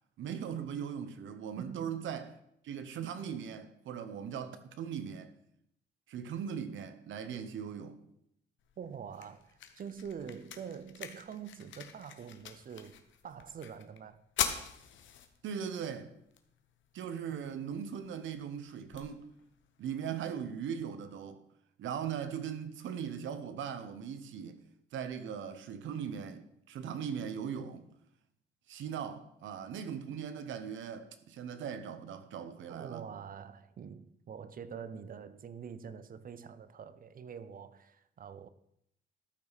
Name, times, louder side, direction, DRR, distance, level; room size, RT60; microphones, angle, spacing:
voice 1, 0.2-2.3 2.6-5.3 6.1-8.0 15.4-16.1 16.9-19.2 19.8-21.4 21.8-24.6 24.9-27.9 28.7-33.1, right 8 dB, 75° right, 1.0 m, -39 dB
voice 2, 1.6-2.1 8.8-14.2 17.3-17.6 32.7-38.5, right 7 dB, 45° right, 0.7 m, -45 dB
sound 1, 8.6-20.6, left 9 dB, 70° left, 1.0 m, -44 dB
13.0 x 5.7 x 4.1 m
cardioid pair, 90°, 20 cm